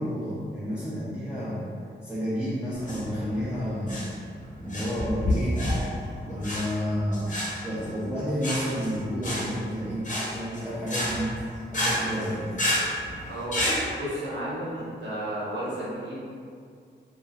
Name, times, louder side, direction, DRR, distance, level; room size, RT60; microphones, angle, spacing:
voice 1, 0.0-1.6 2.0-4.1 4.6-5.7 6.2-7.3 7.6-10.1 10.3-11.4 11.7-12.6, equal, 5° right, -11 dB, 0.5 m, -30 dB
sound 1, 2.7-13.8, left 1 dB, 45° left, 0.7 m, -30 dB
voice 2, 13.3-13.7 13.9-16.2, right 1 dB, 85° right, -9 dB, 1.0 m, -33 dB
2.8 x 2.4 x 2.3 m, 2.3 s
wide cardioid pair, 115°, 18 cm